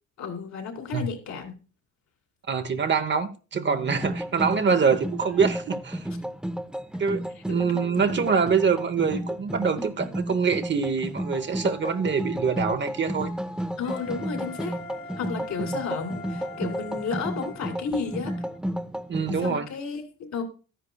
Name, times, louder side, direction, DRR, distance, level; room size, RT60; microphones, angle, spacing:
voice 1, 0.2-1.5 7.5-7.9 13.8-14.8 15.2-18.4 19.4-20.4, left 5 dB, 65° left, 2.9 m, -33 dB
voice 2, 2.5-6.1 7.0-13.3 19.1-19.7, right 6 dB, 40° right, 1.0 m, -25 dB
sound 1, 3.8-19.6, equal, 5° right, 0.8 m, -33 dB
Wind instrument woodwind instrument, 13.8-18.6, left 2 dB, 45° left, 1.4 m, -42 dB
13.0 x 10.0 x 2.3 m
cardioid pair, 90°, 30 cm